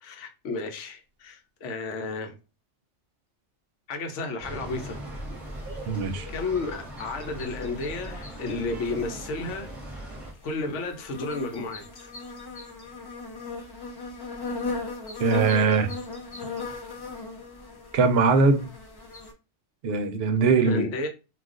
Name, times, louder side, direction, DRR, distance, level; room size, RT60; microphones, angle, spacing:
voice 1, 0.0-2.4 3.9-5.0 6.3-10.1 10.4-12.1 20.6-21.1, left 3 dB, 80° left, 1.0 m, -32 dB
sound 1, 4.4-10.3, right 1 dB, ahead, 0.8 m, -39 dB
sound 2, 4.7-19.3, left 3 dB, 40° left, 0.3 m, -38 dB
voice 2, 5.9-6.3 15.2-15.9 17.9-18.7 19.8-20.9, right 4 dB, 65° right, 0.7 m, -21 dB
2.3 x 2.3 x 3.6 m
omnidirectional pair, 1.2 m